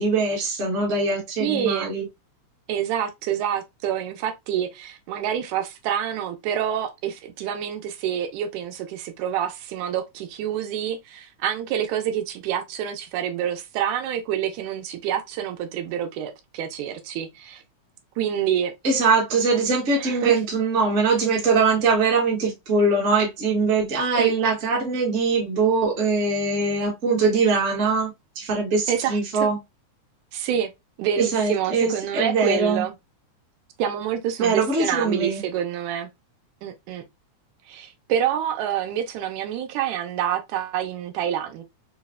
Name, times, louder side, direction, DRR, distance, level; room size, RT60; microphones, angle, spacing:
voice 1, 0.0-2.1 18.8-29.6 31.2-32.8 34.4-35.4, right 4 dB, 55° right, 0.8 m, -22 dB
voice 2, 1.4-1.9 2.7-17.6 18.2-18.7 20.0-20.4 24.2-24.3 28.9-29.2 30.3-30.7 31.0-32.9 33.8-36.1 36.6-37.0 37.7-41.6, right 9 dB, 85° right, 2.0 m, -27 dB
4.7 x 2.0 x 2.2 m
omnidirectional pair, 3.4 m